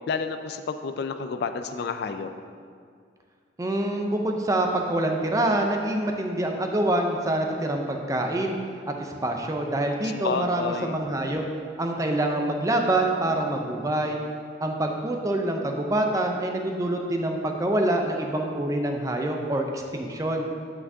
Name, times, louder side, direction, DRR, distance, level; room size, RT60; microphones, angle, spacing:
voice 1, 0.1-2.3 10.0-10.9, left 5 dB, 60° left, 9 dB, 0.3 m, -30 dB
voice 2, 3.6-8.6 8.9-11.4 11.8-14.2 14.6-20.4, right 1 dB, 20° right, 2 dB, 0.5 m, -26 dB
8.3 x 5.9 x 2.7 m, 2.1 s
head